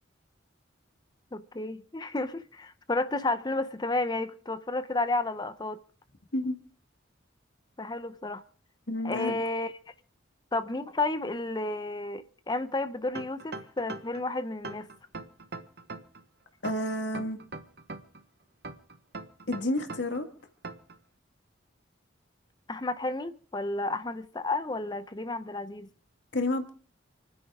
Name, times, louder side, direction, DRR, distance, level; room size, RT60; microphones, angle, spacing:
voice 1, 1.3-5.8 7.8-8.4 9.0-9.7 10.5-14.9 22.7-25.9, left 2 dB, 20° left, 0.7 m, -32 dB
voice 2, 8.9-9.4 16.6-17.4 19.5-20.3 26.3-26.7, left 1 dB, 65° left, 1.9 m, -30 dB
sound 1, 13.1-14.2 14.6-16.2 16.6-18.2 18.6-20.2 20.6-21.0, right 3 dB, 55° right, 1.2 m, -40 dB
28.5 x 9.9 x 3.6 m
head